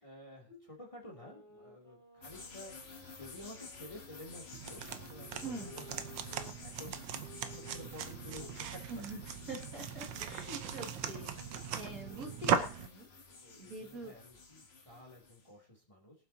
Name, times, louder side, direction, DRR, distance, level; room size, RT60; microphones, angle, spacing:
voice 1, 0.0-9.0 12.0-12.3 13.4-16.1, left 1 dB, 15° left, 0 dB, 2.7 m, -52 dB
sound 1, 1.0-6.5 7.2-12.8, right 1 dB, ahead, 4.6 m, -59 dB
sound 2, 2.2-15.5, left 4 dB, 35° left, 1.4 m, -52 dB
sound 3, 4.5-12.9, right 8 dB, 80° right, 1.6 m, -38 dB
voice 2, 5.4-5.7 6.9-7.0 8.9-9.2 9.5-13.1 13.6-14.1, right 2 dB, 50° right, -2 dB, 2.6 m, -45 dB
23.0 x 7.7 x 2.8 m, 0.33 s
omnidirectional pair, 2.0 m